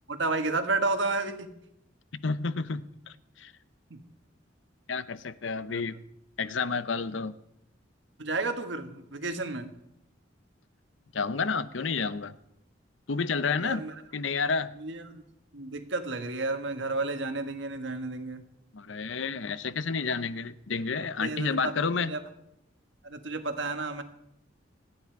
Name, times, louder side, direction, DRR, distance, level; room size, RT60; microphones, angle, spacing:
voice 1, 0.1-1.5 3.9-4.0 5.7-5.8 8.2-9.7 13.6-13.9 14.8-15.2 15.5-18.4 21.2-22.2 23.0-24.0, right 3 dB, 70° right, 7 dB, 1.6 m, -31 dB
voice 2, 2.1-3.5 4.9-6.0 6.4-7.4 11.1-12.4 13.1-13.8 14.1-14.7 18.7-22.1, left 4 dB, 80° left, 15 dB, 0.7 m, -30 dB
27.0 x 9.8 x 4.7 m, 0.80 s
head